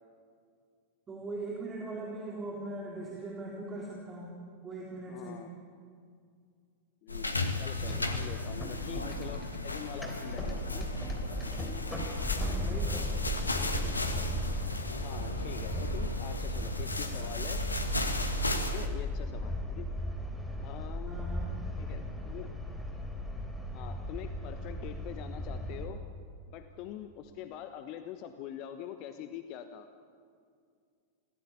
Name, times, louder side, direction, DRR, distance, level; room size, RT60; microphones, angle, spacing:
voice 1, 1.1-5.4 12.3-13.1 21.1-21.5, right 2 dB, 20° right, -3 dB, 3.7 m, -40 dB
voice 2, 5.1-5.5 7.0-10.9 15.0-17.6 18.6-19.9 20.6-21.3 21.8-22.5 23.7-26.0 26.5-29.9, left 10 dB, 40° left, 8 dB, 1.2 m, -44 dB
sound 1, 7.1-18.9, left 2 dB, 80° left, 1.7 m, -35 dB
sound 2, 7.8-25.9, equal, 5° left, 3.6 m, -37 dB
26.0 x 17.5 x 8.4 m, 2.2 s
figure-of-eight pair, 90°, 0 cm